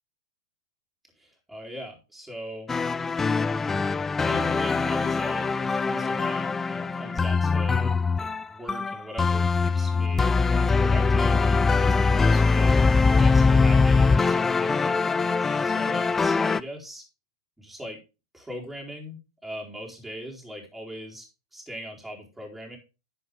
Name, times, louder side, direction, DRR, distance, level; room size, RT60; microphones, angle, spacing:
voice 1, 1.2-2.8 3.8-12.8 13.2-17.0 17.6-18.0 18.3-21.2 21.5-22.8, equal, 5° right, -2 dB, 4.2 m, -40 dB
sound 1, 2.7-16.6, left 4 dB, 15° left, 0.4 m, -22 dB
10.5 x 7.5 x 3.8 m, 0.29 s
hypercardioid pair, 105°, 2 cm